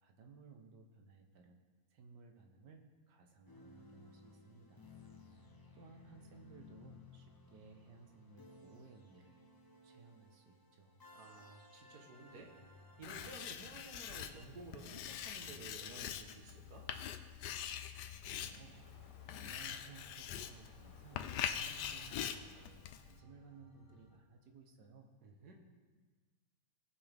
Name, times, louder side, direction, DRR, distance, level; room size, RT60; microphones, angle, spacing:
voice 1, 0.0-1.6 1.9-4.9 5.3-9.4 9.8-11.0 18.2-18.8 19.3-21.2 21.6-25.1, right 4 dB, 85° right, 4 dB, 1.6 m, -59 dB
sound 1, 3.5-14.5, left 3 dB, 30° left, 0.4 m, -60 dB
voice 2, 11.1-12.5 13.0-16.9 25.2-25.5, right 3 dB, 70° right, 2 dB, 1.7 m, -53 dB
sound 2, 12.3-24.2, left 2 dB, 45° left, 1.7 m, -62 dB
Writing, 13.0-23.2, left 9 dB, 85° left, 1.2 m, -44 dB
17.5 x 5.9 x 3.5 m, 1.4 s
omnidirectional pair, 1.8 m